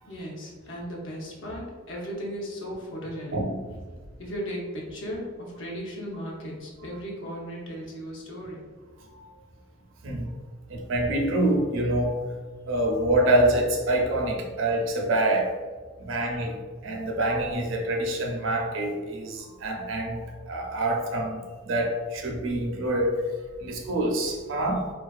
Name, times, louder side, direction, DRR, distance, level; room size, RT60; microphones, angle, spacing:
voice 1, 0.1-3.4 4.2-8.6, equal, 70° left, -3 dB, 0.7 m, -36 dB
voice 2, 3.3-3.8 9.1-9.3 10.0-10.3 10.7-12.2 12.7-15.6 16.0-23.1 23.6-24.9, right 1 dB, 70° right, 1 dB, 0.5 m, -26 dB
2.4 x 2.3 x 2.3 m, 1.4 s
head